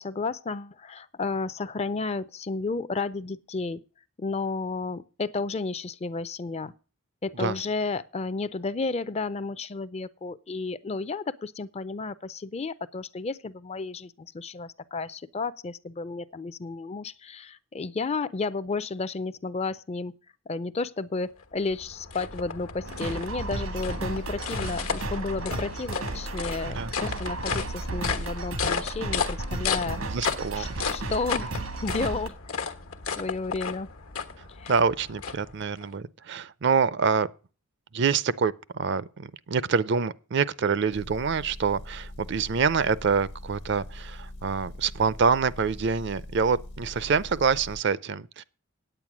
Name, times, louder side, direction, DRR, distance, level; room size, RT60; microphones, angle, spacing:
voice 1, 0.0-3.8 4.2-6.7 7.2-20.1 20.5-30.0 30.6-32.7 33.2-33.9 34.6-34.7, left 3 dB, 30° left, 0.4 m, -32 dB
sound 1, 21.4-35.9, left 6 dB, 85° left, 1.2 m, -34 dB
sound 2, 22.9-32.3, right 2 dB, 85° right, 1.6 m, -34 dB
voice 2, 29.8-30.9 34.7-37.3 37.9-48.4, right 5 dB, 55° right, 0.5 m, -26 dB
Motor vehicle (road) / Engine, 40.9-47.8, left 1 dB, 55° left, 0.8 m, -42 dB
9.0 x 8.9 x 6.0 m
head